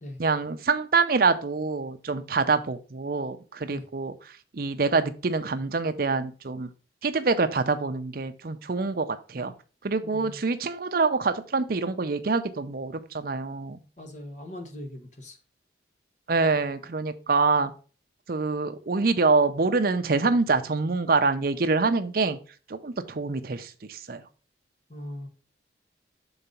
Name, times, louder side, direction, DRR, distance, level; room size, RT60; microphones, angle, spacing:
voice 1, 0.2-4.1 4.5-6.7 7.0-9.5 9.8-13.8 16.3-17.7 18.3-22.4 22.7-24.2, right 4 dB, 55° right, 0.6 m, -25 dB
voice 2, 10.0-10.4 14.0-15.4 24.9-25.3, left 1 dB, 40° left, 1.2 m, -40 dB
5.7 x 3.9 x 5.3 m
head